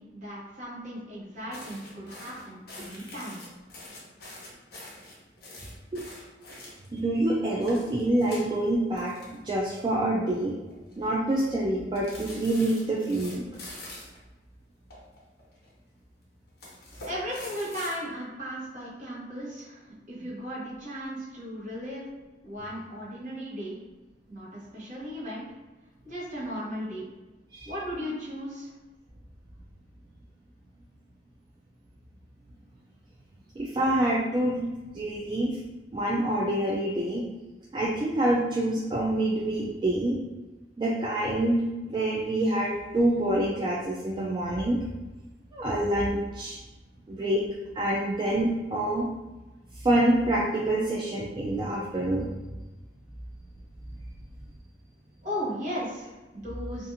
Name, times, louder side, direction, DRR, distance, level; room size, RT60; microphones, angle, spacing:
voice 1, 0.0-3.4 17.1-22.0 22.4-23.8 24.3-25.4 26.0-27.1 27.6-28.7 55.2-56.9, equal, 45° right, -8 dB, 1.1 m, -36 dB
sound 1, 1.5-7.0 7.5-9.8 10.1-10.3 10.7-11.1 11.9-14.2 14.9-15.7 16.5-18.0, left 1 dB, 65° left, 0.8 m, -45 dB
voice 2, 6.6-9.1 9.4-10.6 11.0-13.5 27.5-27.7 33.6-34.7 34.9-35.6 35.9-37.2 37.7-40.2 40.8-44.8 45.5-46.6 47.1-47.4 47.7-49.1 49.8-52.3, right 1 dB, 25° right, -4 dB, 0.3 m, -26 dB
2.7 x 2.5 x 2.5 m, 1.1 s
head